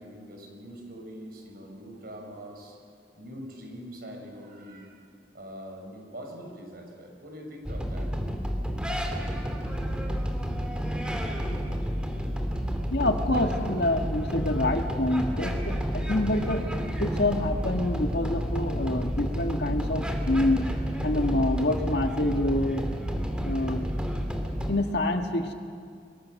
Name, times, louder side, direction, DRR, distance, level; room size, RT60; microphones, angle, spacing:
voice 1, 0.0-2.8 3.2-5.1 5.3-8.1, equal, 60° right, 2 dB, 5.4 m, -43 dB
sound 1, 7.6-24.7, equal, 5° right, 2.4 m, -30 dB
voice 2, 12.9-16.6 17.0-20.7 21.0-22.8 23.4-23.8 24.7-25.5, left 1 dB, 65° left, 5 dB, 1.7 m, -27 dB
24.0 x 23.5 x 6.5 m, 2.2 s
head